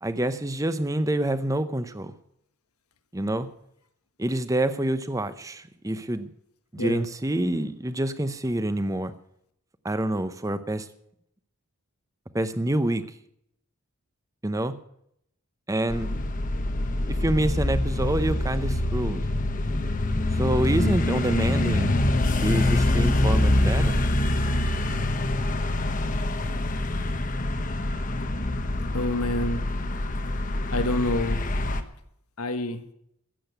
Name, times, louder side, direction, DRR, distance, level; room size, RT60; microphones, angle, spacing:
voice 1, 0.0-2.1 3.1-3.5 4.2-6.3 6.7-9.1 9.8-10.9 12.3-13.0 14.4-14.7 15.7-16.1 17.1-19.2 20.3-21.9 22.4-24.0, right 1 dB, 15° right, 12 dB, 0.7 m, -27 dB
sound 1, 15.9-31.8, left 1 dB, 35° left, 1.0 m, -25 dB
voice 2, 28.9-29.6 30.7-31.4 32.4-32.8, left 1 dB, 90° left, 9 dB, 1.4 m, -27 dB
14.0 x 8.6 x 8.0 m, 0.74 s
head